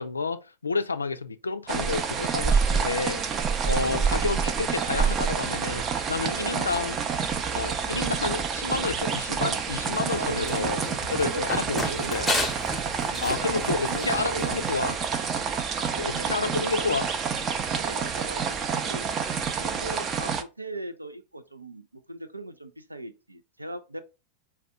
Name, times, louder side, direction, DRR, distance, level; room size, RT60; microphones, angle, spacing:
voice 1, 0.0-3.2 3.6-7.0 7.5-10.8 11.1-12.3 13.2-14.9 16.0-17.1, left 4 dB, 75° left, 0.3 m, -30 dB
sound 1, 1.7-20.4, right 6 dB, 30° right, 0.4 m, -28 dB
voice 2, 3.7-4.2 6.2-6.7 10.1-12.3 13.1-15.0 15.7-16.9 17.7-19.1 19.6-24.0, right 2 dB, 85° right, 0.4 m, -38 dB
Run, 9.8-15.0, left 2 dB, 5° left, 0.8 m, -34 dB
4.2 x 2.2 x 3.5 m
figure-of-eight pair, 90°, 0 cm